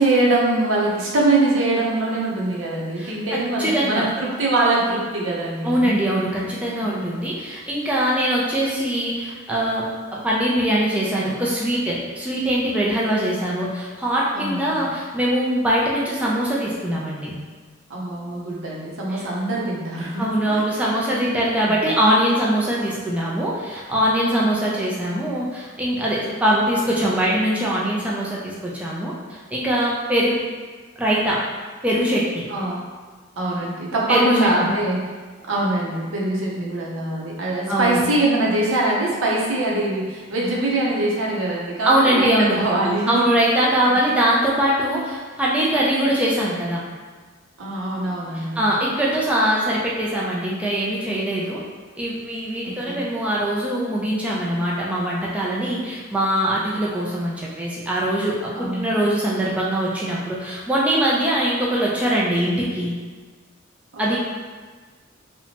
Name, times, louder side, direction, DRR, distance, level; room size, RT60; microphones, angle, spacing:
voice 1, 0.0-5.9 6.8-7.2 14.3-14.8 17.9-20.6 21.6-21.8 32.5-32.8 33.4-35.1 35.5-43.3 43.9-44.0 47.6-48.6 52.6-53.1 58.5-58.9 63.9-64.2, right 2 dB, 85° right, -4 dB, 0.6 m, -23 dB
voice 2, 3.0-4.0 5.6-9.8 10.1-17.4 19.1-19.3 20.2-30.4 31.0-31.4 31.8-32.4 34.1-34.4 37.7-38.0 41.8-42.6 43.1-46.8 48.3-51.6 52.0-62.9 64.0-64.2, right 1 dB, 5° right, -6 dB, 0.3 m, -22 dB
2.8 x 2.1 x 2.8 m, 1.4 s
head